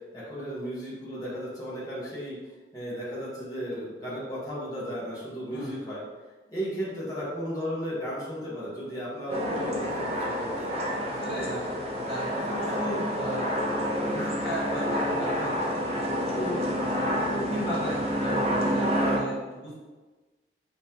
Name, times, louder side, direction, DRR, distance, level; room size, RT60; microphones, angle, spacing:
voice 1, 0.1-2.4 2.7-6.0 6.5-10.7, equal, 20° left, -8 dB, 1.3 m, -35 dB
sound 1, 9.3-19.2, equal, 35° right, 0.7 m, -28 dB
voice 2, 11.0-11.7 12.0-13.5 14.0-15.7 16.3-16.6 17.3-19.8, equal, 75° left, -5 dB, 1.2 m, -35 dB
5.5 x 3.1 x 2.9 m, 1.3 s
head